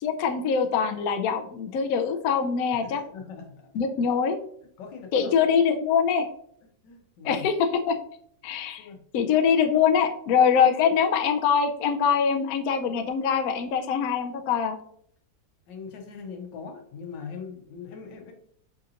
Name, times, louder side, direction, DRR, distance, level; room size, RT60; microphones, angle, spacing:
voice 1, 0.0-3.0 3.7-4.4 5.1-6.3 7.2-8.0 8.4-8.9 9.1-14.8, left 7 dB, 70° left, 5 dB, 0.9 m, -23 dB
voice 2, 2.8-3.7 4.8-5.4 6.8-7.5 8.8-9.0 15.7-18.3, left 5 dB, 90° left, 3 dB, 1.5 m, -41 dB
5.7 x 2.5 x 2.8 m, 0.63 s
omnidirectional pair, 1.9 m